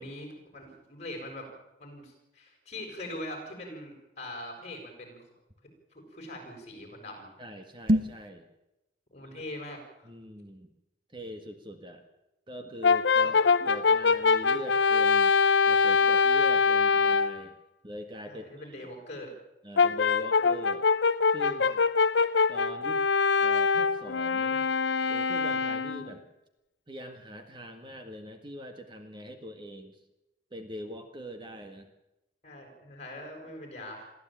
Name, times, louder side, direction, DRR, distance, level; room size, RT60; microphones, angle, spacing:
voice 1, 0.0-1.5 1.8-5.2 5.9-7.3 9.1-10.1 13.2-13.4 18.3-19.4 32.4-34.1, left 1 dB, 40° left, 2 dB, 6.8 m, -42 dB
voice 2, 7.4-8.5 10.0-10.7 11.1-12.0 12.5-13.4 13.6-15.3 15.7-17.5 17.8-18.9 19.6-20.9 21.3-21.8 22.5-23.0 23.3-24.6 25.1-26.3 26.9-30.0 30.5-31.9, equal, 25° right, 6 dB, 1.7 m, -42 dB
sound 1, 7.8-8.3, equal, 50° right, 1.2 m, -25 dB
Brass instrument, 12.8-17.4 19.8-26.1, left 5 dB, 75° left, 0.7 m, -24 dB
22.5 x 15.0 x 9.1 m, 0.93 s
head